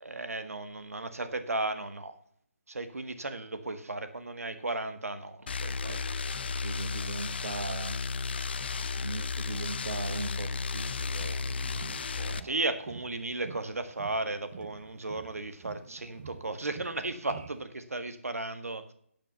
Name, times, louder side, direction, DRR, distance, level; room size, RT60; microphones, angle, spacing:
voice 1, 0.0-2.1 2.7-6.1 12.4-18.9, right 2 dB, 90° right, 1.6 m, -35 dB
sound 1, 5.5-12.4, left 4 dB, 45° left, 0.7 m, -33 dB
voice 2, 5.9-6.3 6.5-8.0 9.0-12.6, right 3 dB, 60° right, 1.0 m, -40 dB
sound 2, 11.1-17.6, right 7 dB, 35° right, 0.6 m, -49 dB
12.5 x 7.2 x 7.0 m
hypercardioid pair, 165°, 8 cm